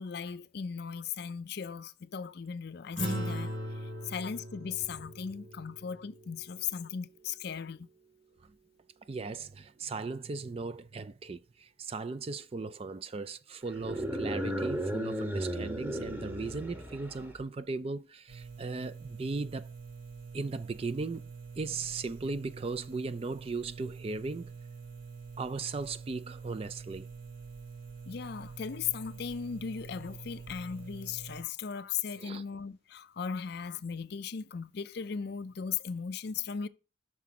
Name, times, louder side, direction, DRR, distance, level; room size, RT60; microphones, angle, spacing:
voice 1, 0.0-7.9 28.1-36.7, left 7 dB, 55° left, 0.4 m, -37 dB
sound 1, 3.0-7.6, equal, 70° right, 2.5 m, -39 dB
voice 2, 9.1-19.7 20.3-21.2 21.6-24.5 25.4-27.1 32.2-32.4, right 3 dB, 30° right, 0.3 m, -37 dB
sound 2, 13.7-17.4, equal, 10° right, 0.9 m, -35 dB
sound 3, 18.3-31.4, right 5 dB, 45° right, 1.2 m, -46 dB
6.0 x 4.8 x 5.8 m
head